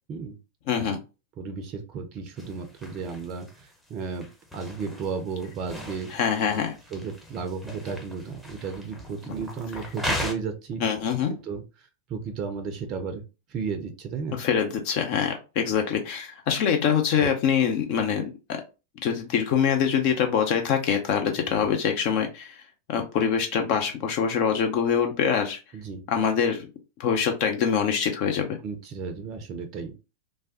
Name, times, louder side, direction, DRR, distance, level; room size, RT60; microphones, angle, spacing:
voice 1, 0.7-1.0 6.1-6.7 10.8-11.3 14.4-18.6 19.0-22.6 22.9-25.6 26.1-26.7 27.0-28.6, left 7 dB, 45° left, 4 dB, 0.5 m, -24 dB
voice 2, 1.4-4.3 4.5-6.1 6.9-10.8 11.3-13.2 13.5-14.4 17.1-17.3 21.5-21.6 25.7-26.0 28.6-30.0, right 5 dB, 35° right, 5 dB, 0.4 m, -34 dB
sound 1, 2.3-10.3, left 1 dB, 5° left, 0.7 m, -38 dB
3.2 x 2.2 x 2.7 m, 0.30 s
figure-of-eight pair, 90°, 0 cm